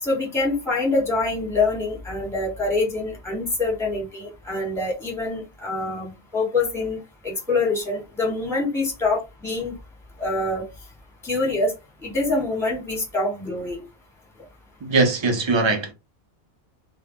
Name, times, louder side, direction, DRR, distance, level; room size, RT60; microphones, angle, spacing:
voice 1, 0.0-9.7 10.2-10.7 11.2-11.7 12.0-13.8, left 3 dB, ahead, 0.8 m, -25 dB
voice 2, 14.8-15.9, right 3 dB, 40° right, 0.4 m, -21 dB
2.1 x 2.0 x 3.6 m
omnidirectional pair, 1.2 m